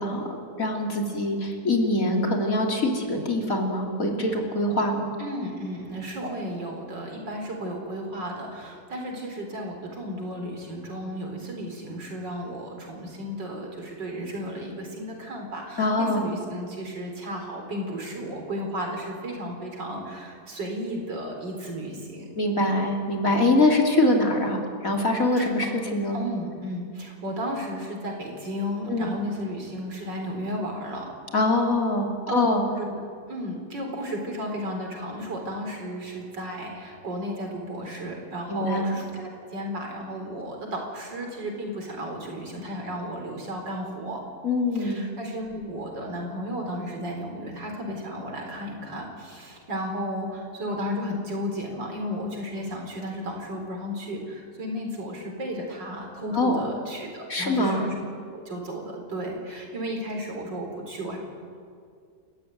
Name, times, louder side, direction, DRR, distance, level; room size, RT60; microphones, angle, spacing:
voice 1, 0.0-5.1 15.8-16.2 22.4-26.2 28.9-29.1 31.3-32.6 38.5-38.9 44.4-45.0 56.3-56.7 57.3-57.9, left 2 dB, 50° left, 1 dB, 3.4 m, -24 dB
voice 2, 5.2-22.3 25.4-25.5 26.1-31.1 32.3-32.5 32.8-33.0 33.3-44.2 44.7-57.9 58.3-61.2, equal, 85° right, 2 dB, 4.9 m, -34 dB
29.5 x 14.0 x 9.3 m, 2.2 s
omnidirectional pair, 1.9 m